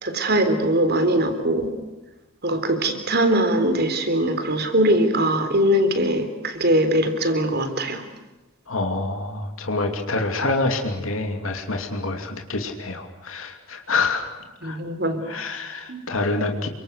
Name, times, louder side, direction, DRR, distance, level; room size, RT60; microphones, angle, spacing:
voice 1, 0.0-1.7 2.4-8.0 14.6-15.2 15.9-16.0, right 1 dB, 50° right, 9 dB, 3.8 m, -21 dB
voice 2, 8.7-14.8 15.3-16.7, left 3 dB, 85° left, 4 dB, 2.7 m, -27 dB
29.0 x 25.0 x 6.5 m, 1.1 s
head